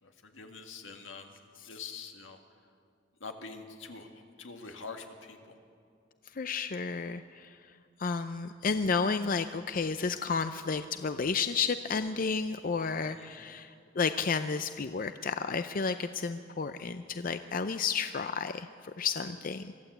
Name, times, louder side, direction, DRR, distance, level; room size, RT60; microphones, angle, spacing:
voice 1, 0.0-1.3 1.6-2.4 3.2-5.5 13.0-13.4 19.2-19.3, left 4 dB, 85° left, 4 dB, 2.0 m, -45 dB
voice 2, 6.4-7.6 8.0-19.7, left 5 dB, 45° left, 10 dB, 0.5 m, -32 dB
23.5 x 14.5 x 8.1 m, 2.4 s
head